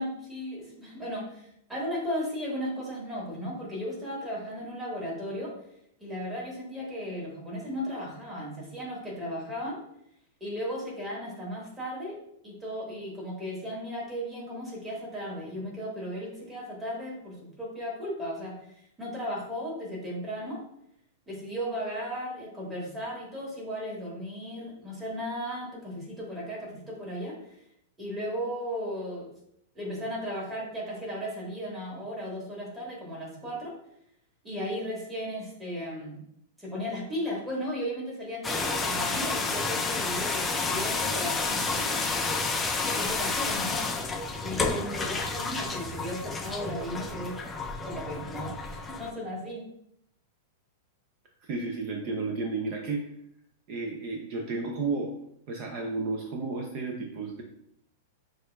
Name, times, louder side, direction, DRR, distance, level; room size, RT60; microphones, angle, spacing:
voice 1, 0.0-5.5 6.0-9.8 10.4-12.2 12.4-18.5 19.0-20.6 21.3-27.4 28.0-29.3 29.7-33.7 34.4-36.2 36.6-42.4 42.8-43.9 44.4-47.3 47.8-49.7, equal, 10° right, -5 dB, 1.4 m, -35 dB
sound 1, 38.4-49.1, left 3 dB, 15° left, 0.3 m, -30 dB
voice 2, 51.4-53.1 53.7-55.1 55.5-57.4, right 3 dB, 45° right, 2 dB, 0.5 m, -32 dB
6.4 x 2.4 x 2.2 m, 0.74 s
hypercardioid pair, 135°, 0 cm